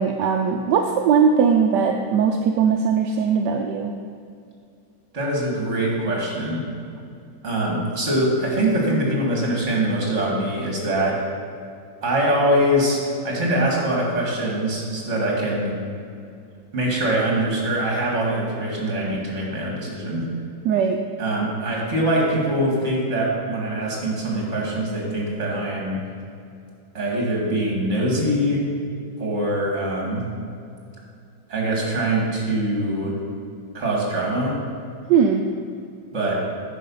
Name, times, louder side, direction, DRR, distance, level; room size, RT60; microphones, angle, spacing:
voice 1, 0.0-3.9 20.6-21.0 35.1-35.4, right 6 dB, 80° right, 3 dB, 1.2 m, -19 dB
voice 2, 5.1-6.7 7.4-11.2 12.0-15.7 16.7-20.3 21.2-26.0 26.9-28.7 29.2-30.3 31.5-33.1 33.7-34.6 36.1-36.4, right 1 dB, 45° right, -3 dB, 2.3 m, -23 dB
9.3 x 5.7 x 5.5 m, 2.4 s
omnidirectional pair, 1.9 m